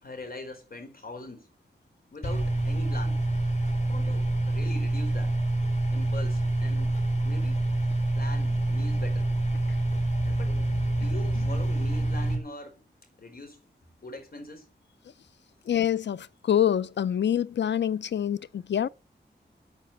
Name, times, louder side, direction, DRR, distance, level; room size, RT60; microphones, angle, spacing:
voice 1, 0.0-1.5 2.1-3.2 3.9-5.4 5.9-7.0 7.2-7.8 8.2-9.3 10.2-10.6 10.9-12.8 13.2-13.6 14.0-14.7, left 2 dB, 55° left, 4.2 m, -42 dB
sound 1, 2.2-12.3, right 1 dB, 40° left, 3.7 m, -26 dB
voice 2, 15.7-18.9, left 9 dB, 90° left, 0.5 m, -26 dB
9.4 x 8.9 x 7.0 m
wide cardioid pair, 105°, 18 cm